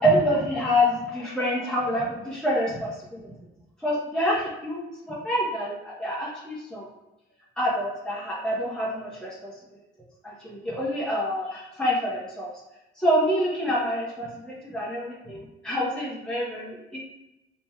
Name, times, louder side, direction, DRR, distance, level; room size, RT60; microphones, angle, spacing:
voice 1, 0.0-3.3 3.8-6.9 7.6-9.5 10.2-12.5 13.0-17.0, equal, 5° left, -7 dB, 1.2 m, -27 dB
5.1 x 2.9 x 2.3 m, 0.94 s
cardioid pair, 90°, 20 cm